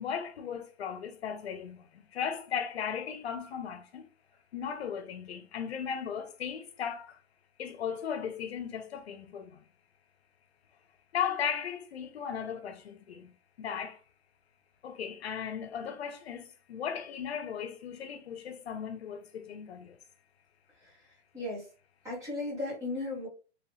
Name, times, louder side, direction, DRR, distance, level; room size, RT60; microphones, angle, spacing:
voice 1, 0.0-4.0 4.5-7.2 7.6-9.6 11.1-14.0 14.8-20.0, left 7 dB, 65° left, 0.8 m, -36 dB
voice 2, 21.3-21.7 22.0-23.3, left 2 dB, 10° right, 1.1 m, -35 dB
3.1 x 2.9 x 3.1 m
hypercardioid pair, 170°, 35 cm